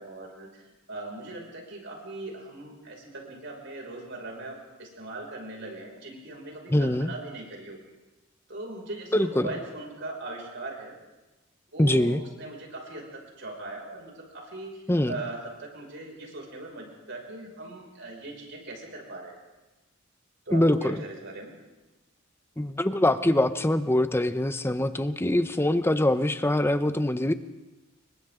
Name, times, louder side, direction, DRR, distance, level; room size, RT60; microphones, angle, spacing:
voice 1, 0.0-7.8 8.5-11.0 11.7-19.4 20.5-21.6, right 2 dB, 60° right, 0 dB, 6.0 m, -40 dB
voice 2, 6.7-7.1 9.1-9.5 11.8-12.2 14.9-15.1 20.5-21.0 22.6-27.3, left 1 dB, 10° left, 11 dB, 0.8 m, -23 dB
29.0 x 23.5 x 3.8 m, 1.1 s
head